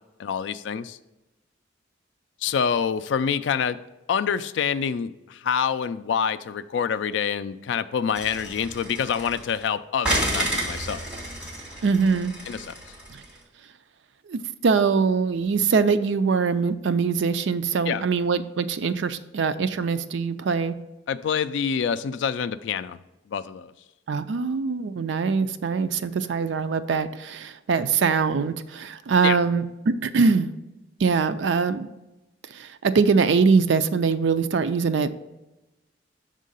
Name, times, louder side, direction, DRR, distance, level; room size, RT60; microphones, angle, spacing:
voice 1, 0.2-1.0 2.4-3.8 4.1-11.0 12.5-12.7 17.9-18.0 21.1-23.0 23.3-23.7 29.2-29.4, left 7 dB, 70° left, 13 dB, 0.3 m, -26 dB
sound 1, 8.1-9.6 10.0-13.3, right 1 dB, 5° right, 1.6 m, -30 dB
voice 2, 11.8-12.3 13.1-13.2 14.3-20.8 24.1-30.5 31.0-31.9 32.5-35.2, right 5 dB, 70° right, 11 dB, 0.4 m, -23 dB
6.4 x 3.7 x 5.3 m, 1.0 s
head